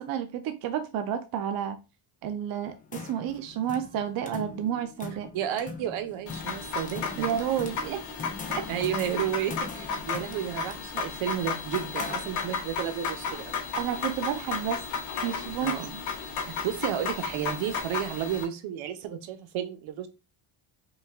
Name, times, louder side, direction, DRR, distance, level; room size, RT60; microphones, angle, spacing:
voice 1, 0.0-1.8 2.2-5.3 7.2-8.0 8.5-8.7 13.8-14.8 15.2-16.0, right 9 dB, 50° right, 0.5 m, -31 dB
sound 1, 2.6-12.8, left 4 dB, 20° left, 0.3 m, -42 dB
voice 2, 5.3-7.5 8.7-13.7 15.6-15.9 16.5-20.1, right 10 dB, 70° right, 0.9 m, -32 dB
sound 2, 6.3-18.4, left 5 dB, 85° left, 2.0 m, -34 dB
5.3 x 2.3 x 3.4 m
cardioid pair, 180°, 49 cm